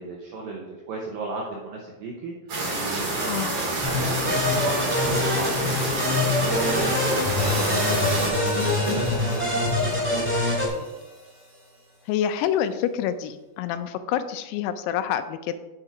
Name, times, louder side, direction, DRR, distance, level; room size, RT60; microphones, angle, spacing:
voice 1, 0.0-2.3 2.7-5.9 6.4-10.8, right 3 dB, 75° right, -2 dB, 2.3 m, -35 dB
sound 1, 2.5-8.3, right 2 dB, 50° right, 3.1 m, -28 dB
sound 2, 3.8-10.7, left 2 dB, 5° right, 2.0 m, -25 dB
Hi-hat, 7.4-11.6, equal, 30° right, 0.8 m, -33 dB
voice 2, 12.1-15.5, left 10 dB, 80° left, 10 dB, 2.5 m, -27 dB
9.9 x 4.4 x 4.8 m, 1.1 s
omnidirectional pair, 4.9 m